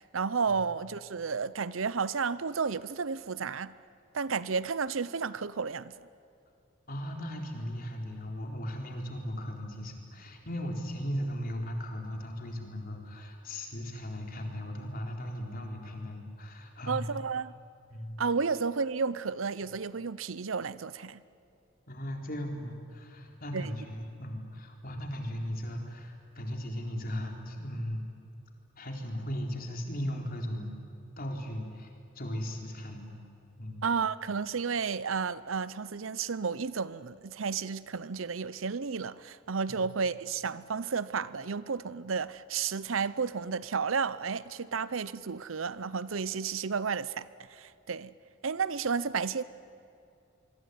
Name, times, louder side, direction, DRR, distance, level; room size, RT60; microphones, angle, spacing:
voice 1, 0.0-3.7 4.1-6.0 16.9-17.5 18.2-21.2 23.5-23.7 33.8-48.1 48.4-49.4, right 5 dB, 75° right, 0.7 m, -32 dB
voice 2, 6.9-17.0 17.9-18.2 21.9-28.1 28.8-30.7 31.2-33.2 33.6-33.9 39.7-39.8, equal, 45° left, 4.1 m, -37 dB
26.0 x 23.0 x 9.6 m
head